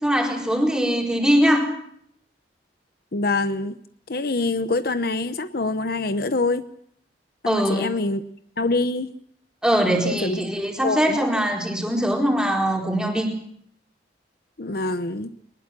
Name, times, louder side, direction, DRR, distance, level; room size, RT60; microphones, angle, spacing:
voice 1, 0.0-1.7 7.5-7.9 9.6-13.3, equal, 5° right, 1 dB, 4.3 m, -21 dB
voice 2, 3.1-3.8 4.1-6.7 7.4-8.2 8.6-9.2 10.2-10.4 10.8-11.2 14.6-15.3, left 2 dB, 55° left, 11 dB, 0.9 m, -25 dB
22.5 x 20.0 x 7.5 m, 0.69 s
head